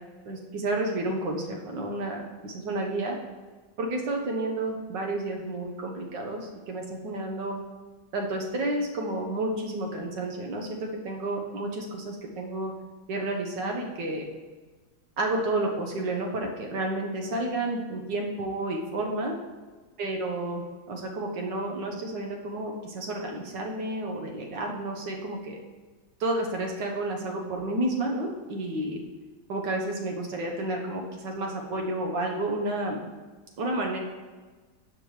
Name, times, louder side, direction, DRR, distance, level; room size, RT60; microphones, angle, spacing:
voice 1, 0.3-3.2 3.8-7.6 8.1-12.7 13.1-14.2 15.2-19.4 20.0-25.6 26.2-29.0 29.5-33.0 33.6-34.0, right 2 dB, 85° right, 1 dB, 1.7 m, -31 dB
12.0 x 4.6 x 3.1 m, 1.3 s
omnidirectional pair, 1.9 m